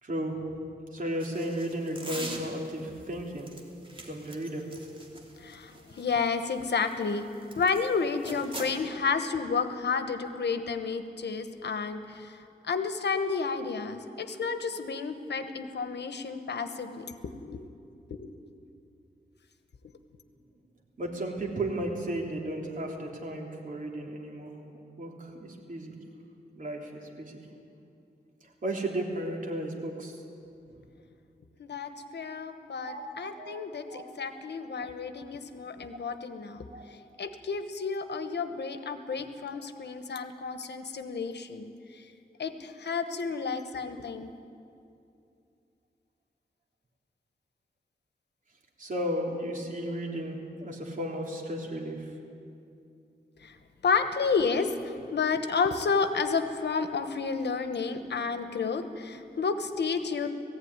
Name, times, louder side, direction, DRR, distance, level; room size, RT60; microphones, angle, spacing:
voice 1, 0.0-0.4 0.9-3.5 4.0-4.6 21.0-24.5 25.0-26.0 26.6-26.9 27.2-27.4 28.6-30.2 32.8-33.0 33.4-33.6 33.9-34.1 36.7-36.8 48.8-52.1, right 1 dB, 50° right, 0 dB, 3.4 m, -34 dB
sound 1, 1.2-2.8 3.4-7.9 8.2-8.8, right 2 dB, 30° right, 3.1 m, -42 dB
voice 2, 5.4-7.3 7.5-17.7 18.1-18.4 31.6-42.1 42.4-44.3 53.4-53.6 53.8-60.3, left 5 dB, 90° left, 9 dB, 1.2 m, -31 dB
18.0 x 15.5 x 9.7 m, 2.6 s
wide cardioid pair, 105°, 17 cm